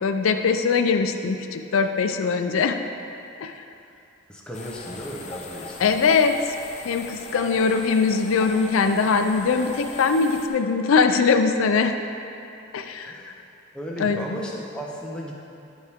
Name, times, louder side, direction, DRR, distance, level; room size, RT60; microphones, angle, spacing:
voice 1, 0.0-2.8 3.4-3.6 5.8-6.4 6.8-11.9 12.7-13.3 14.0-14.4, left 5 dB, 80° left, 7 dB, 0.4 m, -21 dB
voice 2, 4.3-6.0 13.0-13.3 13.7-15.3, equal, 5° left, -3 dB, 0.8 m, -35 dB
sound 1, 4.5-10.5, left 3 dB, 35° left, 0.6 m, -39 dB
12.0 x 4.8 x 3.5 m, 2.6 s
head